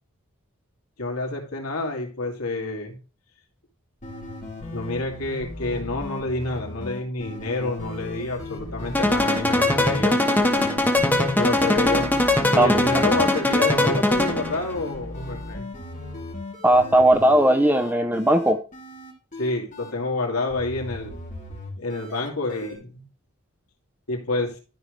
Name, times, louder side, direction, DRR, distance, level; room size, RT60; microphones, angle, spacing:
voice 1, 1.0-3.0 4.7-10.2 11.3-12.1 12.5-15.7 19.4-21.1 21.8-23.1 24.1-24.6, left 2 dB, 75° left, 2.5 m, -28 dB
sound 1, 4.0-19.9 20.5-22.8, left 1 dB, 35° left, 3.1 m, -37 dB
sound 2, 8.9-14.6, left 1 dB, 10° left, 1.1 m, -21 dB
voice 2, 16.6-18.6, right 1 dB, 10° right, 0.5 m, -18 dB
13.0 x 5.2 x 3.2 m
head